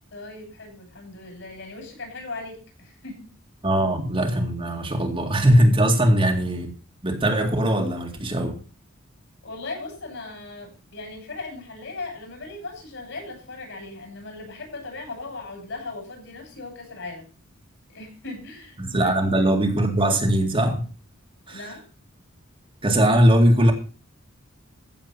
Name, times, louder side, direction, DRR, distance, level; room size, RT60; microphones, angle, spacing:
voice 1, 0.1-3.3 9.4-17.2 17.9-19.5 21.5-21.8, left 3 dB, 60° left, 7.8 m, -38 dB
voice 2, 3.6-6.7 7.0-8.6 18.8-20.9 21.5-21.7 22.8-23.7, right 1 dB, 25° right, 2.1 m, -20 dB
15.0 x 7.3 x 5.8 m
head